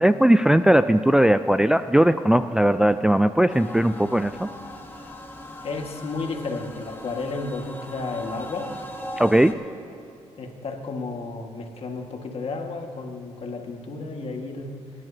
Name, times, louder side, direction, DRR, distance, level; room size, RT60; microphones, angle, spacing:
voice 1, 0.0-4.5 9.2-9.6, right 1 dB, 5° right, 11 dB, 0.3 m, -18 dB
sound 1, 3.5-9.5, left 1 dB, 15° left, 1.3 m, -39 dB
voice 2, 5.6-8.7 10.4-14.8, left 3 dB, 55° left, 3 dB, 1.7 m, -32 dB
23.0 x 11.0 x 2.8 m, 2.6 s
cardioid pair, 75°, 12 cm